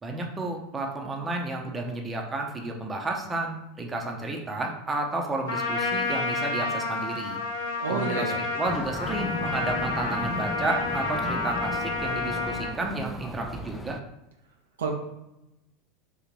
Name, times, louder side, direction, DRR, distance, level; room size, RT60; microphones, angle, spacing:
voice 1, 0.0-7.4 7.9-14.0, right 2 dB, 20° right, 2 dB, 0.7 m, -32 dB
Trumpet, 5.5-12.8, left 3 dB, 70° left, 0.6 m, -30 dB
voice 2, 7.8-8.4 14.8-14.9, right 4 dB, 70° right, 2 dB, 0.5 m, -29 dB
sound 1, 8.7-14.0, left 1 dB, 5° left, 0.3 m, -36 dB
3.8 x 2.5 x 3.0 m, 0.91 s
figure-of-eight pair, 80°, 0 cm